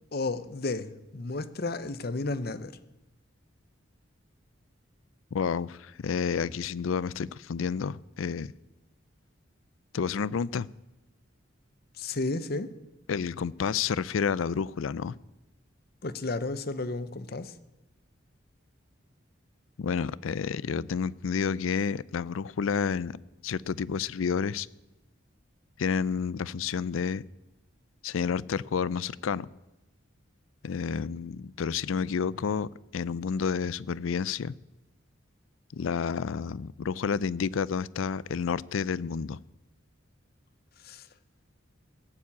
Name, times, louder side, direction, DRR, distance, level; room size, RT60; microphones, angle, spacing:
voice 1, 0.1-2.7 12.0-12.7 16.0-17.5 40.8-41.0, left 3 dB, 50° left, 12 dB, 0.8 m, -32 dB
voice 2, 5.3-8.5 9.9-10.7 13.1-15.1 19.8-23.2 23.4-24.7 25.8-27.2 28.0-29.5 30.6-34.5 35.7-39.4, left 6 dB, 85° left, 21 dB, 0.4 m, -30 dB
17.5 x 7.4 x 8.4 m, 1.0 s
head